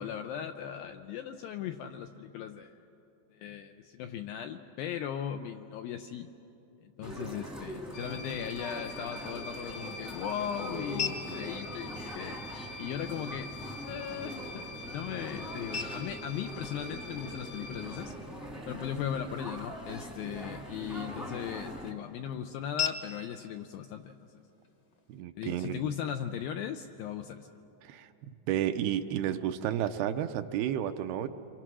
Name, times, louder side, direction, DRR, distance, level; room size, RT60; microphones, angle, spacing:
voice 1, 0.0-2.8 3.3-6.3 6.8-12.4 12.8-18.1 18.7-24.2 25.4-27.5, left 9 dB, 80° left, 7 dB, 2.1 m, -38 dB
sound 1, 7.0-21.9, equal, ahead, 0.9 m, -42 dB
sound 2, 7.9-18.1, left 2 dB, 65° left, 2.4 m, -45 dB
sound 3, 9.2-25.2, left 6 dB, 50° left, 1.3 m, -44 dB
voice 2, 25.1-25.8 27.8-28.1 28.5-31.3, right 10 dB, 80° right, 9 dB, 2.5 m, -31 dB
28.5 x 25.0 x 6.2 m, 3.0 s
omnidirectional pair, 4.8 m